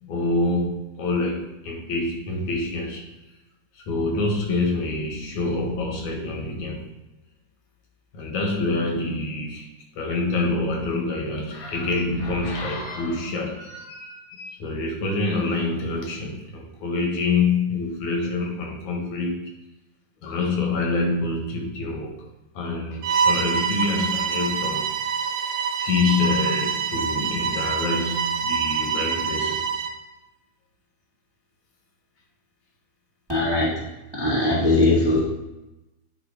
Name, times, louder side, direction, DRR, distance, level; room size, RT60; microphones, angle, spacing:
voice 1, 0.0-3.1 3.8-6.9 8.1-9.7 10.0-19.5 20.2-22.2 22.5-24.9 25.8-29.7, left 3 dB, 75° left, 1 dB, 2.7 m, -26 dB
Bowed string instrument, 23.0-30.0, right 6 dB, 65° right, 1.8 m, -25 dB
voice 2, 33.3-33.7 34.1-35.2, left 2 dB, 35° right, -5 dB, 0.4 m, -20 dB
9.6 x 3.8 x 4.9 m, 0.98 s
omnidirectional pair, 3.3 m